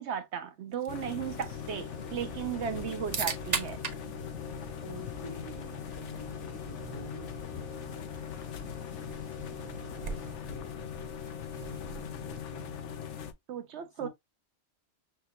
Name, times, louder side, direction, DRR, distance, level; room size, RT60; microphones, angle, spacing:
voice 1, 0.0-3.8 13.5-14.1, right 8 dB, 70° right, 0.9 m, -36 dB
sound 1, 0.7-12.7, right 5 dB, 40° right, 0.7 m, -42 dB
sound 2, 0.9-13.3, left 9 dB, 75° left, 1.0 m, -40 dB
sound 3, 1.3-10.3, right 3 dB, 5° right, 1.5 m, -49 dB
voice 2, 4.8-8.2 9.5-10.2 10.5-10.7 11.5-13.2 14.0-14.1, right 1 dB, 20° left, 1.4 m, -48 dB
5.8 x 2.7 x 2.8 m
omnidirectional pair, 1.2 m